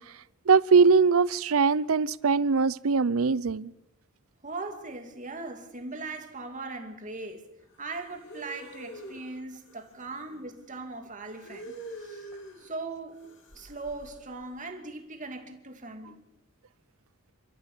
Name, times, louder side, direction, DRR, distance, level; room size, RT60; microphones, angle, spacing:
voice 1, 0.5-3.7, right 5 dB, 80° right, 0.6 m, -21 dB
voice 2, 4.4-7.5 7.8-12.2 12.6-13.2 13.5-16.2, right 3 dB, 35° right, 2.5 m, -39 dB
sound 1, 7.7-10.4 11.2-12.7 13.1-14.4, right 1 dB, 60° left, 3.5 m, -46 dB
28.0 x 13.0 x 7.3 m
head